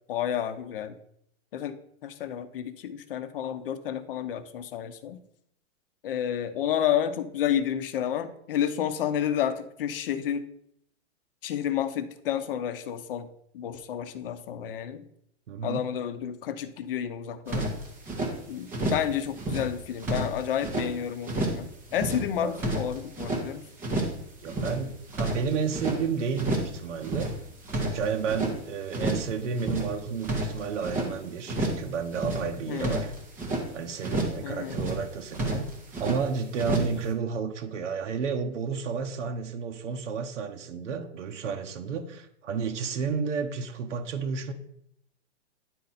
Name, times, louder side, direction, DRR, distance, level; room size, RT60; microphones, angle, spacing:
voice 1, 0.1-1.0 1.5-1.8 2.0-5.2 6.0-10.5 11.4-13.3 13.5-15.0 15.6-17.7 18.5-23.6 32.7-33.0 34.4-34.8, left 9 dB, 50° left, 12 dB, 0.7 m, -30 dB
voice 2, 15.5-15.9 22.4-22.6 24.4-27.3 27.7-33.1 33.7-35.7 36.0-44.5, right 6 dB, 85° right, 5 dB, 1.0 m, -31 dB
sound 1, 17.5-18.3 18.7-19.1 19.4-20.9 21.2-21.7 21.9-23.4 23.8-24.2 24.5-26.0 26.4-26.8 27.0-28.6 28.9-29.3 29.6-31.1 31.5-31.9 32.1-33.7 34.0-34.4 34.7-35.1 35.3-36.2 36.6-37.0, right 1 dB, 5° right, 0.4 m, -30 dB
9.9 x 4.2 x 4.0 m, 0.71 s
hypercardioid pair, 160°, 36 cm